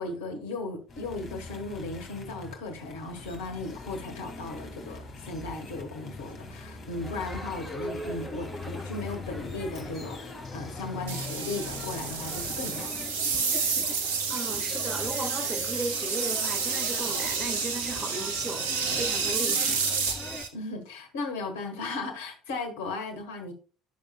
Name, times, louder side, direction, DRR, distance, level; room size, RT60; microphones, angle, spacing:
voice 1, 0.0-12.9 20.5-23.5, left 2 dB, 70° left, 1.4 m, -36 dB
sound 1, 0.9-13.1, left 3 dB, 40° left, 2.0 m, -43 dB
Crowd, 7.0-20.4, left 2 dB, 10° left, 2.9 m, -41 dB
sound 2, 11.1-20.5, right 5 dB, 70° right, 1.1 m, -30 dB
voice 2, 14.3-19.9, right 2 dB, 25° right, 1.5 m, -36 dB
10.0 x 6.6 x 2.2 m
figure-of-eight pair, 60°, 0 cm